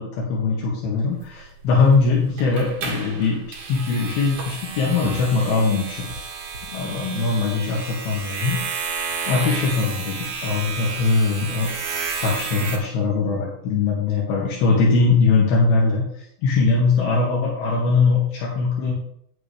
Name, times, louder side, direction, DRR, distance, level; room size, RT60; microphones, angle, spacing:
voice 1, 0.0-6.1 6.7-11.9 12.2-16.0 16.4-18.9, left 4 dB, 80° left, -4 dB, 3.6 m, -21 dB
sound 1, 1.1-12.8, right 5 dB, 75° right, 3.4 m, -32 dB
9.6 x 9.1 x 3.3 m, 0.67 s
omnidirectional pair, 4.5 m